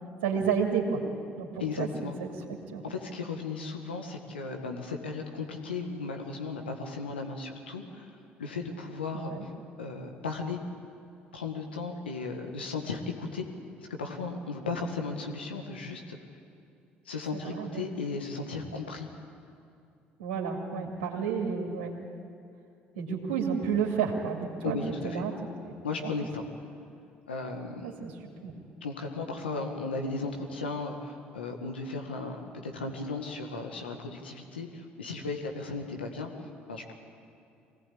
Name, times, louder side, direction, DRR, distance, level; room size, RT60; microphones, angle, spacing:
voice 1, 0.2-1.0 1.4-2.3 2.7-2.8 9.1-9.4 17.3-17.9 20.2-21.9 22.9-24.8 25.0-25.3 25.6-25.7 26.0-26.1 27.8-28.1 28.4-28.5, right 6 dB, 80° right, -2 dB, 2.8 m, -31 dB
voice 2, 1.6-2.2 2.8-8.1 8.4-9.5 9.8-10.6 11.3-13.5 13.9-16.2 17.1-19.1 24.6-25.2 25.8-26.5 27.3-27.9 28.8-36.3 36.7-36.9, left 4 dB, 90° left, 2 dB, 1.8 m, -35 dB
23.5 x 18.5 x 8.7 m, 2.5 s
hypercardioid pair, 55°, 5 cm